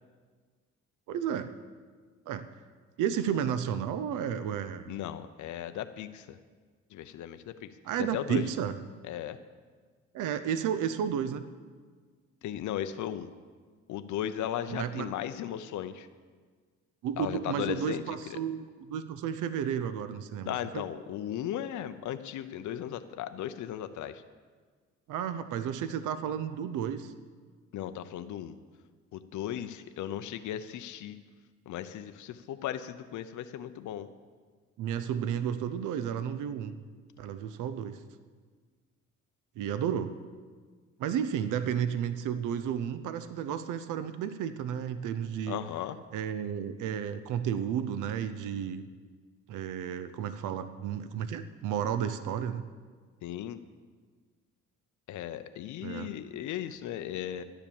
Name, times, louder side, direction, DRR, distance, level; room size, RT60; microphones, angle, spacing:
voice 1, 1.1-1.5 2.3-2.5 3.0-4.9 7.8-8.8 10.1-11.5 14.7-15.1 17.0-20.9 25.1-27.1 34.8-36.8 37.2-38.0 39.6-40.1 41.0-45.6 46.1-48.8 49.5-52.6 55.8-56.1, right 8 dB, 85° right, 12 dB, 0.7 m, -32 dB
voice 2, 4.9-6.4 6.9-7.7 8.1-8.4 9.1-9.4 12.4-13.3 13.9-16.1 17.2-18.0 18.3-18.4 20.5-24.2 27.7-28.5 29.1-31.2 31.7-34.1 45.5-46.0 53.2-53.6 55.1-57.4, left 11 dB, 75° left, 9 dB, 0.7 m, -36 dB
12.0 x 9.9 x 7.1 m, 1.5 s
cardioid pair, 90°, 30 cm